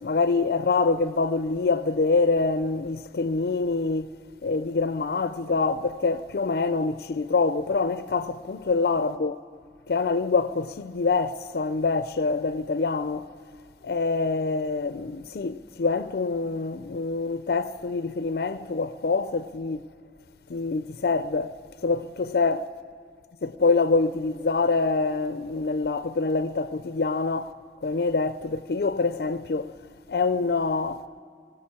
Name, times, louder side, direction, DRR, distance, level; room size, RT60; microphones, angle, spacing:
voice 1, 0.0-4.1 4.4-9.4 9.9-13.3 13.8-19.8 20.5-21.5 21.8-22.7 23.4-27.5 27.8-29.7 30.1-31.0, left 4 dB, 60° left, 0.4 m, -25 dB
19.0 x 17.0 x 8.6 m
head